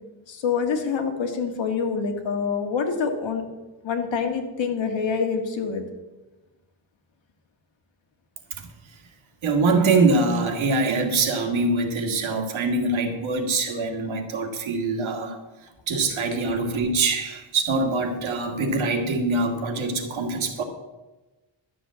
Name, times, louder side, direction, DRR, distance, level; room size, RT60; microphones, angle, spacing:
voice 1, 0.3-3.4 3.8-5.8, left 5 dB, 70° left, 4 dB, 2.0 m, -26 dB
voice 2, 9.4-15.4 15.9-20.6, right 3 dB, 80° right, 4 dB, 2.1 m, -24 dB
12.0 x 7.4 x 7.5 m, 1.1 s
wide cardioid pair, 150°, 47 cm